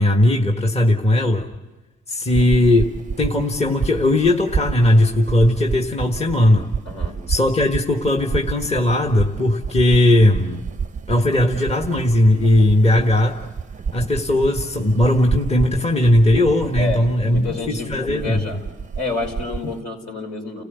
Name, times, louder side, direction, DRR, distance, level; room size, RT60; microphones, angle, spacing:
voice 1, 0.0-1.5 2.1-6.7 7.3-10.6 11.1-13.4 13.9-18.5, left 1 dB, 20° left, 3 dB, 1.6 m, -18 dB
sound 1, 2.3-19.8, right 6 dB, 25° right, 0.7 m, -30 dB
voice 2, 6.9-7.2 16.8-18.6 19.0-20.6, left 3 dB, 65° left, 1 dB, 5.3 m, -29 dB
30.0 x 15.5 x 8.3 m, 1.1 s
cardioid pair, 90°, 30 cm